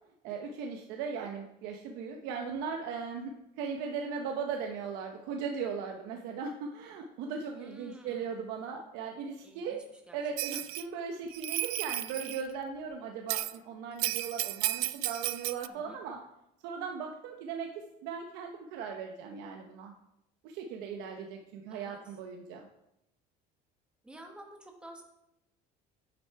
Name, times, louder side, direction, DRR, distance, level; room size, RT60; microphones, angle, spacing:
voice 1, 0.2-9.8 10.1-16.2 16.6-19.9 20.4-22.7, right 6 dB, 90° right, 3 dB, 0.9 m, -38 dB
voice 2, 7.5-8.3 9.4-10.2 10.5-10.6 15.7-16.0 21.7-22.2 24.0-25.0, right 1 dB, 5° right, 2 dB, 1.1 m, -51 dB
Bell, 10.4-10.8 11.3-12.4 13.3-13.6 14.0-15.7, right 18 dB, 65° right, 0.4 m, -33 dB
9.0 x 7.8 x 4.7 m, 0.85 s
cardioid pair, 180°, 17 cm